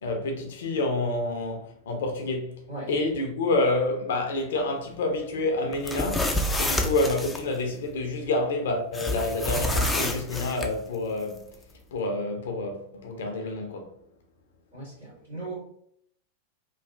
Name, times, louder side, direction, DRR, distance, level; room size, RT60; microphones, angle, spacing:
voice 1, 0.0-2.6 2.9-11.5 11.9-13.9, left 2 dB, 60° left, 0.6 m, -28 dB
box cardboard open flap, 5.7-7.4 8.9-10.7, left 1 dB, 10° left, 0.4 m, -28 dB
voice 2, 14.7-15.5, right 2 dB, 80° right, 1.5 m, -38 dB
3.1 x 2.4 x 2.5 m
figure-of-eight pair, 90°, 0 cm